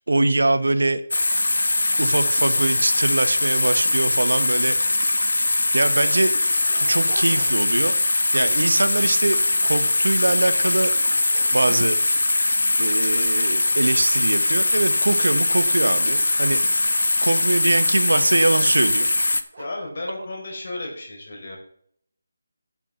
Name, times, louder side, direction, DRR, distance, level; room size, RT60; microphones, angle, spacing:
voice 1, 0.1-1.0 2.0-5.3 5.7-6.3 6.8-7.9 8.3-10.9 11.5-12.0 12.8-19.1, right 2 dB, 85° right, 11 dB, 1.1 m, -23 dB
sound 1, 1.1-19.4, left 2 dB, 90° left, 0.8 m, -21 dB
Dog, 5.2-5.3 5.5-5.6 6.2-7.8 8.2-8.6 9.1-10.6 11.1-12.0 12.6-12.7 13.1-15.5 16.1-16.8 18.0-18.9 19.5-19.9, right 2 dB, 45° right, 3.5 m, -43 dB
voice 2, 19.6-21.6, left 2 dB, 50° left, 0 dB, 4.1 m, -33 dB
9.4 x 7.5 x 5.6 m, 0.62 s
figure-of-eight pair, 170°, 0 cm